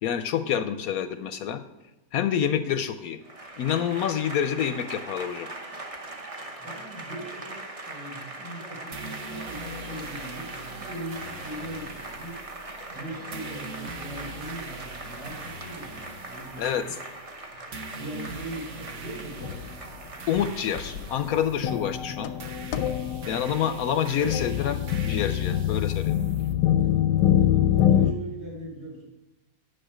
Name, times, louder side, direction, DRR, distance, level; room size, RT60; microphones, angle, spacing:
voice 1, 0.0-1.6 2.1-3.2 3.6-5.5 16.6-16.8 20.3-22.3 23.3-26.2, left 9 dB, 70° left, 10 dB, 0.9 m, -27 dB
Applause / Crowd, 3.2-21.8, right 2 dB, 35° right, 0.5 m, -41 dB
voice 2, 6.6-12.4 12.9-16.9 17.5-17.6 17.9-20.0 27.5-29.0, right 1 dB, 85° right, -4 dB, 4.8 m, -40 dB
sound 1, 8.9-26.5, right 3 dB, 50° right, 1.1 m, -42 dB
sound 2, 19.4-19.7 20.4-20.5 20.8-28.1, left 11 dB, 90° left, 1.2 m, -25 dB
10.0 x 6.4 x 5.0 m, 1.0 s
omnidirectional pair, 1.8 m